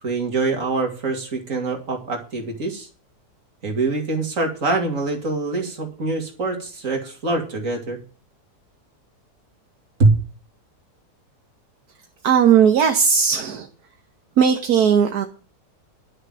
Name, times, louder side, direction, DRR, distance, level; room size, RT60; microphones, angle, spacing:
voice 1, 0.0-2.9 3.6-8.0 10.0-10.1, right 3 dB, 50° right, 3 dB, 2.7 m, -24 dB
voice 2, 12.2-13.7 14.4-15.3, right 7 dB, 70° right, 5 dB, 1.6 m, -17 dB
11.5 x 6.5 x 7.5 m, 0.37 s
omnidirectional pair, 1.7 m